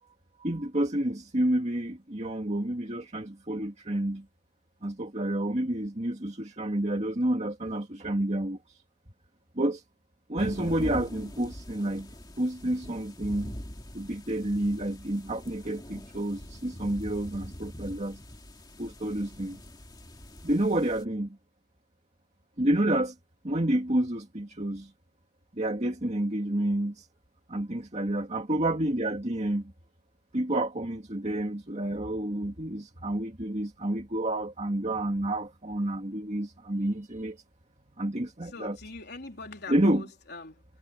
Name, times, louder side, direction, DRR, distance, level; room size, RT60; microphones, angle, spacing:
voice 1, 0.4-4.3 4.8-8.6 9.6-9.8 10.3-12.1 12.4-13.5 13.9-18.2 18.8-19.6 20.4-21.4 22.6-23.1 23.4-24.9 25.6-27.1 27.5-29.7 30.3-37.4 38.0-38.8 39.7-40.0, right 1 dB, 35° right, 2.2 m, -29 dB
sound 1, 10.4-21.0, equal, 20° left, 2.6 m, -43 dB
voice 2, 38.5-40.6, left 3 dB, 50° left, 4.1 m, -42 dB
head